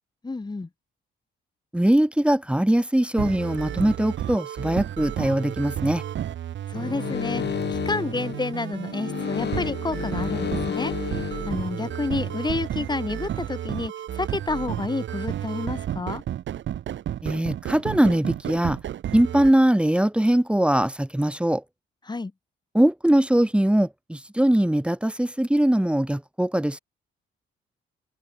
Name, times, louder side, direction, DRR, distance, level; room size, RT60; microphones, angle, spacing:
voice 1, 0.2-0.7 6.7-7.4 7.7-16.2 22.1-22.3, left 3 dB, 20° left, 5.5 m, -30 dB
voice 2, 1.7-6.0 17.2-18.8 19.1-21.6 22.7-26.8, right 1 dB, 5° right, 2.3 m, -21 dB
sound 1, 3.2-19.5, right 11 dB, 70° right, 6.7 m, -32 dB
sound 2, 6.7-12.4, left 8 dB, 60° left, 8.0 m, -31 dB
cardioid pair, 90°, 20 cm